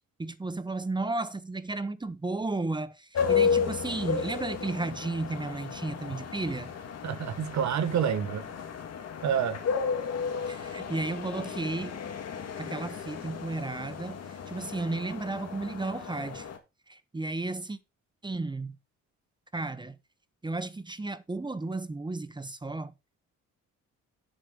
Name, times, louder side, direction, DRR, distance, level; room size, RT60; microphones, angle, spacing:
voice 1, 0.2-6.7 10.5-12.0 12.6-16.5 16.9-17.8 18.2-18.7 19.5-19.9 20.4-22.9, right 2 dB, 15° right, 0.9 m, -33 dB
sound 1, 3.1-16.6, left 6 dB, 55° left, 1.9 m, -33 dB
voice 2, 7.0-8.5 9.2-9.6, right 8 dB, 65° right, 1.5 m, -28 dB
8.2 x 7.6 x 3.9 m
cardioid pair, 90°, 30 cm